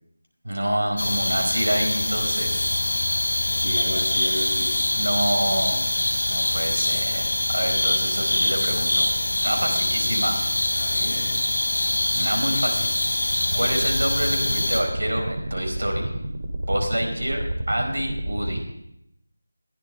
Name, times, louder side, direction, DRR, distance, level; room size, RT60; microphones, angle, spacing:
voice 1, 0.4-2.7 4.9-5.8 6.3-9.1 9.4-10.3 12.1-12.9 13.5-16.1 16.7-18.7, right 1 dB, 60° right, 2 dB, 4.8 m, -27 dB
sound 1, 1.0-14.8, left 1 dB, 55° left, 3.2 m, -24 dB
voice 2, 3.6-4.7 9.6-10.3 10.7-11.3, equal, 85° left, 1 dB, 6.8 m, -33 dB
sound 2, 13.5-18.6, right 1 dB, 45° right, 2.2 m, -30 dB
21.0 x 16.0 x 3.7 m, 0.79 s
figure-of-eight pair, 165°, 0 cm